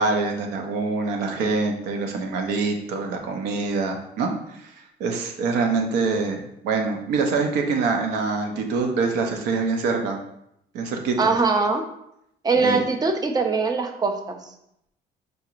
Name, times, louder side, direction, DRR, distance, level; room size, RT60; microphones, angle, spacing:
voice 1, 0.0-4.7 5.0-10.2 10.7-11.3 12.5-12.8, right 4 dB, 90° right, 4 dB, 0.7 m, -25 dB
voice 2, 11.2-11.8 12.4-14.4, right 4 dB, 25° right, 5 dB, 0.5 m, -22 dB
5.1 x 2.9 x 2.5 m, 0.78 s
cardioid pair, 110°, 17 cm